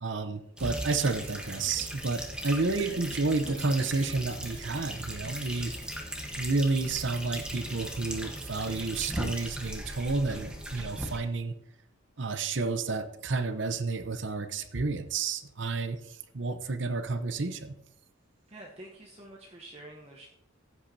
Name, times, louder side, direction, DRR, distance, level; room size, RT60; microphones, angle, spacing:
voice 1, 0.0-5.7 6.4-11.6 12.2-17.7, right 3 dB, 60° right, 11 dB, 0.8 m, -30 dB
sound 1, 0.6-11.2, equal, 5° right, 1.2 m, -38 dB
sound 2, 3.3-11.4, left 1 dB, 80° left, 2.0 m, -55 dB
voice 2, 18.5-20.3, right 1 dB, 30° right, -1 dB, 1.0 m, -47 dB
15.0 x 8.8 x 2.8 m, 0.79 s
head